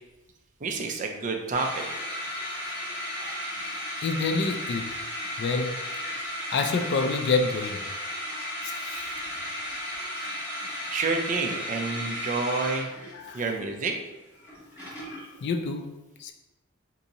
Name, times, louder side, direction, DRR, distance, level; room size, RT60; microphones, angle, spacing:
voice 1, 0.6-1.8 10.9-12.9 13.3-13.9, right 4 dB, 35° right, 0.4 m, -29 dB
sound 1, 1.5-15.4, equal, 15° left, 1.5 m, -35 dB
voice 2, 4.0-5.0 5.4-5.8 6.5-7.8 8.6-9.0 13.1-13.4 15.4-15.9 16.2-16.3, left 4 dB, 55° left, 0.3 m, -27 dB
2.7 x 2.6 x 3.9 m
head